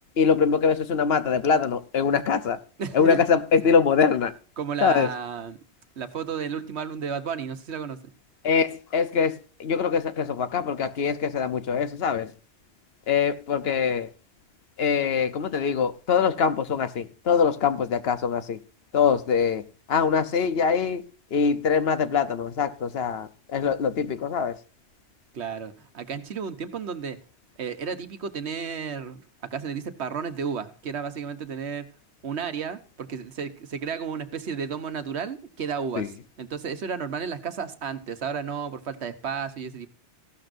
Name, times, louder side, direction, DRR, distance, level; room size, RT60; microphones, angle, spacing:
voice 1, 0.2-2.6 2.9-4.3 4.8-5.1 8.4-12.3 13.1-14.1 14.8-18.6 18.9-24.6 36.0-36.1, left 6 dB, 65° left, 1.0 m, -23 dB
voice 2, 2.8-3.2 4.6-5.6 6.0-8.0 25.3-27.2 27.6-29.2 29.5-31.9 32.2-36.1 36.4-39.9, right 6 dB, 75° right, 1.3 m, -32 dB
15.5 x 12.5 x 2.6 m
omnidirectional pair, 1.1 m